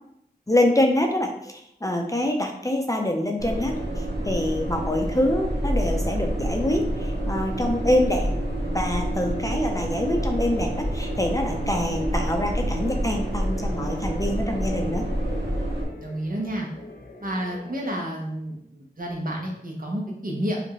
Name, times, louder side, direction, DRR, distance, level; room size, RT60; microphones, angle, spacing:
voice 1, 0.5-8.3 8.7-15.0, left 1 dB, 20° left, 2 dB, 0.6 m, -25 dB
sound 1, 3.4-15.8, right 1 dB, 85° right, 0.9 m, -28 dB
sound 2, 10.1-17.9, left 2 dB, 60° left, 0.9 m, -44 dB
voice 2, 16.0-16.7 17.2-20.6, right 1 dB, 55° right, -2 dB, 1.1 m, -30 dB
5.3 x 2.5 x 3.0 m, 0.76 s
wide cardioid pair, 45°, 17 cm